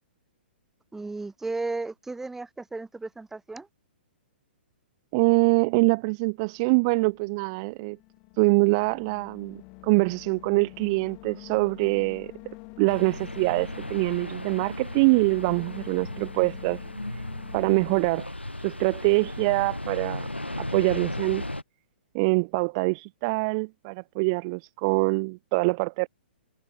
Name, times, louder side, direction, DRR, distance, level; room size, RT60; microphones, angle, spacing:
voice 1, 0.9-3.7, right 3 dB, 5° right, 3.7 m, -34 dB
voice 2, 5.1-8.0 8.4-12.3 12.8-16.8 17.5-18.3 18.6-20.3 20.7-21.4 22.1-26.1, right 29 dB, 35° right, 0.7 m, -24 dB
sound 1, 6.2-18.0, left 34 dB, 30° left, 7.7 m, -47 dB
sound 2, 12.9-21.6, left 1 dB, 85° left, 4.6 m, -36 dB
figure-of-eight pair, 115°, 6 cm